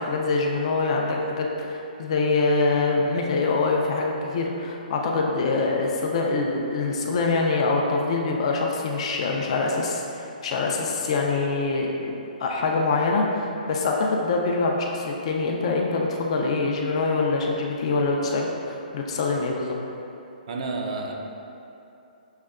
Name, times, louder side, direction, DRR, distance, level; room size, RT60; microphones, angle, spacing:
voice 1, 0.0-19.8, left 3 dB, 40° left, 0 dB, 0.4 m, -24 dB
voice 2, 20.5-21.2, right 3 dB, 50° right, 1 dB, 0.4 m, -30 dB
6.4 x 2.1 x 2.4 m, 2.8 s
hypercardioid pair, 165°, 5 cm